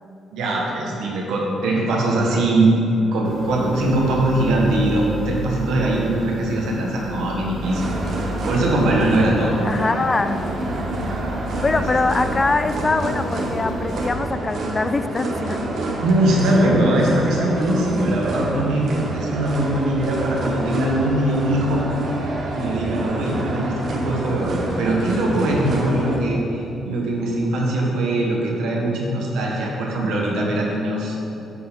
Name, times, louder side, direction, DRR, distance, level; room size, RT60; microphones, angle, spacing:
voice 1, 0.3-2.8 3.1-7.8 8.2-9.6 11.7-11.8 16.0-21.8 22.5-31.2, right 1 dB, 80° right, -2 dB, 1.4 m, -21 dB
sound 1, 3.2-14.1, equal, 15° right, 1.3 m, -32 dB
sound 2, 7.6-26.2, right 2 dB, 55° right, 1.1 m, -28 dB
voice 2, 9.6-10.4 11.6-15.7 23.5-24.1, left 3 dB, 25° left, 11 dB, 0.3 m, -23 dB
8.4 x 3.9 x 5.8 m, 3.0 s
cardioid pair, 90°, 0 cm